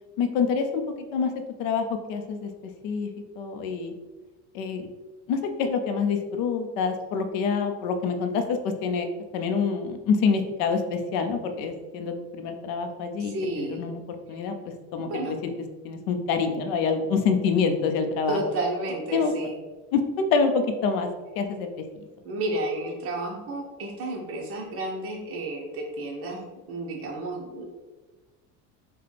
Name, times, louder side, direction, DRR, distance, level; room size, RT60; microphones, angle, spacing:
voice 1, 0.2-0.8 1.1-1.3 1.6-2.5 2.8-3.1 3.4-3.9 4.5-4.9 5.3-9.1 9.3-14.0 14.3-14.6 14.9-15.5 15.8-18.4 19.1-19.3 19.9-21.1 21.4-21.9, left 5 dB, 70° left, 7 dB, 0.7 m, -26 dB
voice 2, 13.2-14.0 14.3-14.4 15.0-15.3 18.3-19.6 22.2-27.6, right 2 dB, 40° right, -2 dB, 1.0 m, -32 dB
5.8 x 2.3 x 3.3 m, 1.2 s
cardioid pair, 140°, 36 cm